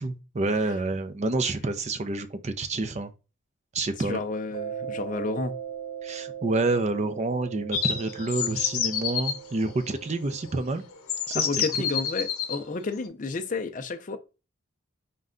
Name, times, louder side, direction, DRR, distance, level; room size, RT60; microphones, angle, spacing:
voice 1, 0.0-3.1 3.7-4.2 6.0-10.8 11.3-11.5, right 2 dB, 30° right, 0.4 m, -28 dB
voice 2, 4.0-5.6 11.3-14.2, left 3 dB, 35° left, 0.4 m, -31 dB
Mallet percussion, 4.5-10.9, right 8 dB, 85° right, 1.0 m, -39 dB
sound 1, 7.7-9.4 10.4-10.5 11.1-12.6, left 8 dB, 85° left, 0.7 m, -28 dB
5.2 x 2.2 x 3.6 m
head